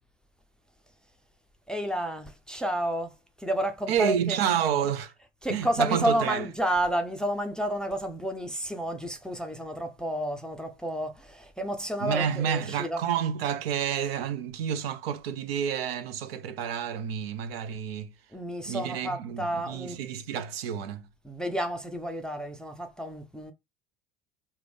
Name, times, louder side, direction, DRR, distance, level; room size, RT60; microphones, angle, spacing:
voice 1, 1.7-4.4 5.4-13.0 18.3-20.0 21.2-23.5, equal, ahead, 0.4 m, -31 dB
voice 2, 3.9-5.1 5.5-6.5 12.0-18.1 18.7-21.1, right 8 dB, 70° right, 0.6 m, -29 dB
3.5 x 2.1 x 3.4 m
figure-of-eight pair, 70°, 32 cm